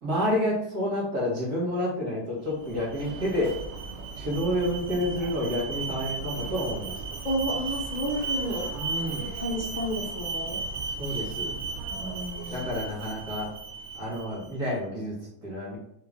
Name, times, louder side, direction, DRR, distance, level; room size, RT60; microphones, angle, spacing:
voice 1, 0.0-3.5 4.2-6.9 8.7-9.3 11.0-11.5 12.5-13.5 14.0-15.8, left 1 dB, 65° right, -5 dB, 2.1 m, -29 dB
Alarm, 2.5-14.5, right 4 dB, 85° right, 0.6 m, -35 dB
voice 2, 7.2-8.7 9.4-10.6 11.9-12.7, equal, 55° left, -3 dB, 0.5 m, -31 dB
3.7 x 3.2 x 3.5 m, 0.75 s
omnidirectional pair, 1.7 m